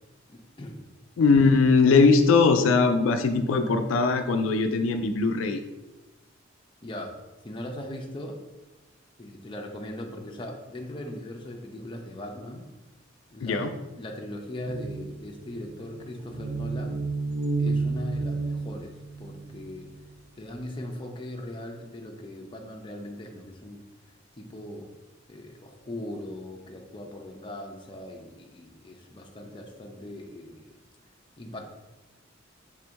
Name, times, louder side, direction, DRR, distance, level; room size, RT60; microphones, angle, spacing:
voice 1, 0.3-0.8 6.8-7.1 7.4-8.4 9.2-12.7 13.3-17.0 17.6-19.9 20.4-23.8 24.4-24.9 25.3-30.7 31.4-31.7, left 1 dB, 25° left, 1 dB, 0.5 m, -39 dB
voice 2, 1.2-5.6 13.4-13.7, left 4 dB, 80° left, 7 dB, 0.4 m, -20 dB
sound 1, 14.6-19.9, right 3 dB, 55° right, 0.5 m, -31 dB
3.7 x 2.6 x 4.5 m, 1.1 s
head